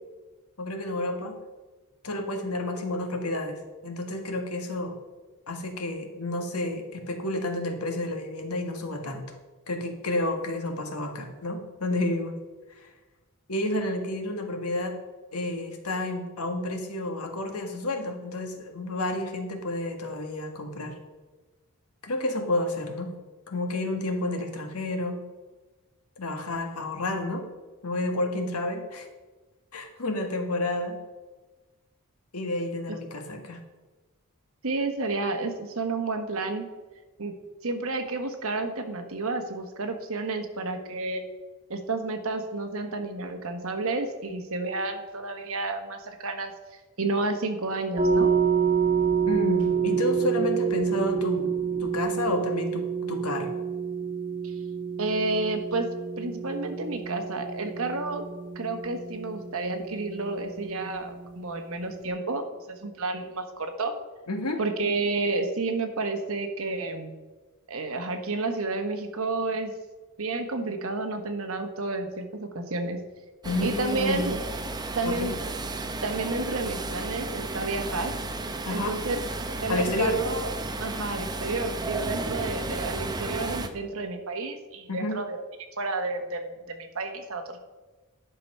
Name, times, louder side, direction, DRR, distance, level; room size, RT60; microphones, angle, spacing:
voice 1, 0.6-1.4 2.0-5.0 5.5-9.2 9.7-12.3 12.8-12.9 13.5-14.9 15.3-20.9 22.0-23.1 23.5-25.2 26.2-27.4 27.8-29.1 29.7-31.0 32.3-33.6 49.3-53.6 64.3-64.6 73.4-74.3 75.0-75.3 78.6-79.0 79.7-80.2 84.9-85.2, left 2 dB, 85° left, 4 dB, 1.6 m, -30 dB
voice 2, 34.6-36.7 37.2-37.3 37.6-41.2 41.7-46.5 47.0-48.3 54.4-54.5 55.0-55.9 56.2-58.2 58.5-63.9 64.6-67.2 67.7-69.7 70.2-73.0 73.6-74.4 74.9-75.3 76.0-78.1 78.7-79.2 79.6-80.5 80.8-85.4 85.8-87.6, right 3 dB, 65° right, 6 dB, 1.2 m, -30 dB
sound 1, 48.0-62.1, right 6 dB, 40° right, 1.5 m, -28 dB
sound 2, 73.4-83.7, right 2 dB, 20° right, 0.6 m, -33 dB
10.5 x 5.9 x 5.4 m, 1.3 s
head